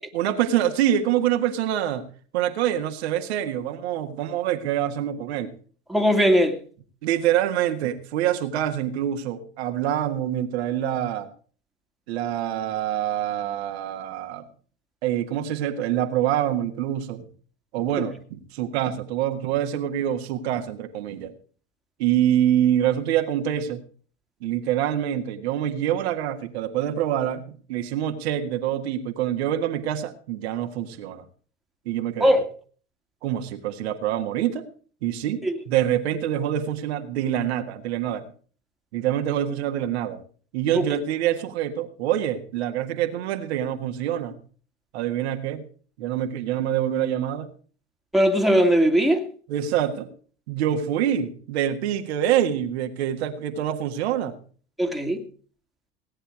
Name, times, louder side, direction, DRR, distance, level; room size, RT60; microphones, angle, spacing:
voice 1, 0.1-2.0 2.3-5.5 7.0-11.3 12.1-14.4 15.0-17.3 17.7-21.3 22.0-23.8 24.4-27.4 27.7-31.2 31.9-32.4 33.2-34.7 35.0-38.2 38.9-40.2 40.5-44.3 44.9-45.7 46.0-47.5 49.5-50.1 50.5-54.4, right 11 dB, 65° right, 1.7 m, -25 dB
voice 2, 5.9-6.6 32.2-32.4 35.4-35.5 40.7-40.9 48.1-49.3 54.8-55.3, equal, ahead, 2.2 m, -19 dB
17.5 x 10.0 x 4.8 m
hypercardioid pair, 80°, 34 cm